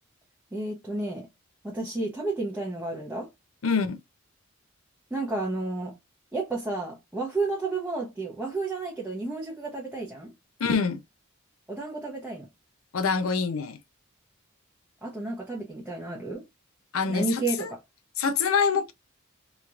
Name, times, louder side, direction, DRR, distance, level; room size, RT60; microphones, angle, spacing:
voice 1, 0.5-1.3 1.6-3.3 5.1-6.0 6.3-10.3 11.7-12.5 15.0-16.4 17.1-17.8, right 3 dB, 10° right, 0.8 m, -31 dB
voice 2, 3.6-4.0 10.6-11.0 12.9-13.8 16.9-17.7 18.2-18.9, left 5 dB, 80° left, 0.5 m, -25 dB
3.0 x 2.9 x 2.4 m
head